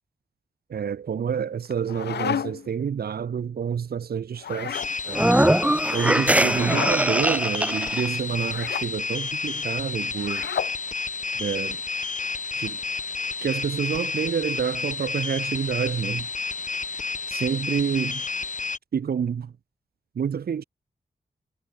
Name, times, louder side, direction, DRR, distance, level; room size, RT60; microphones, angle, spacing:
voice 1, 0.7-5.3 5.9-10.5 11.4-11.8 12.6-12.8 13.4-16.3 17.3-18.2 18.9-19.5 20.2-20.6, right 7 dB, 65° right, 0.7 m, -28 dB
sound 1, 1.7-2.7 4.4-4.9 6.5-7.0 8.5-8.9 10.2-10.8, left 9 dB, 85° left, 0.7 m, -31 dB
sound 2, 4.7-18.8, left 4 dB, 50° left, 1.8 m, -30 dB
sound 3, 5.1-8.1, right 1 dB, 10° right, 0.9 m, -21 dB
cardioid pair, 60°, 17 cm